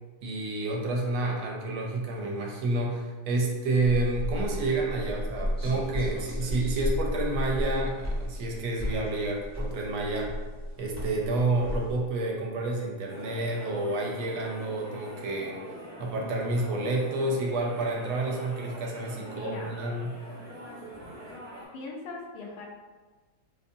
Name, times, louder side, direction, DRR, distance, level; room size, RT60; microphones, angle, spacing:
voice 1, 0.2-10.3 10.8-15.6 16.0-20.2, right 2 dB, 80° right, 0 dB, 1.4 m, -29 dB
sound 1, 3.8-12.0, equal, 20° left, 0.4 m, -33 dB
sound 2, 13.1-21.6, equal, 35° right, 0.8 m, -43 dB
voice 2, 19.2-19.7 21.7-22.7, left 3 dB, 90° left, -1 dB, 1.6 m, -40 dB
4.0 x 2.7 x 2.5 m, 1.3 s
omnidirectional pair, 2.3 m